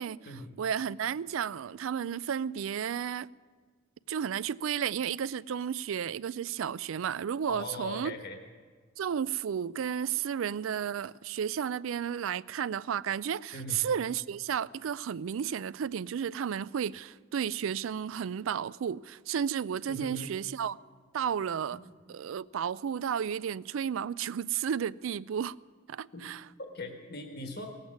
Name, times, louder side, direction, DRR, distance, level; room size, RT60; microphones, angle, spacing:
voice 1, 0.6-3.3 4.1-8.2 9.0-20.8 21.1-21.8 22.1-25.5 25.9-26.4, right 8 dB, 75° right, 0.4 m, -33 dB
voice 2, 7.5-8.4 13.5-13.8 19.9-20.3 21.7-21.9 26.1-26.3 26.6-27.7, left 1 dB, 50° left, 1.3 m, -40 dB
18.0 x 8.2 x 9.4 m
head